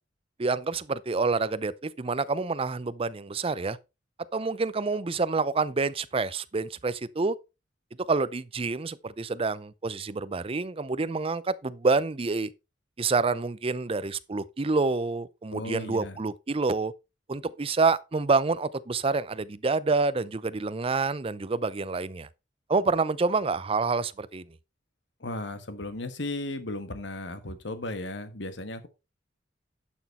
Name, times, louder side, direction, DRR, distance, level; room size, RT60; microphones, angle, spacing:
voice 1, 0.4-3.8 4.3-7.4 8.1-12.5 13.0-16.9 17.3-22.3 22.7-24.4, right 4 dB, 30° right, 0.5 m, -27 dB
voice 2, 15.5-16.2 25.2-28.9, left 2 dB, 65° left, 1.5 m, -35 dB
11.0 x 6.2 x 4.2 m
head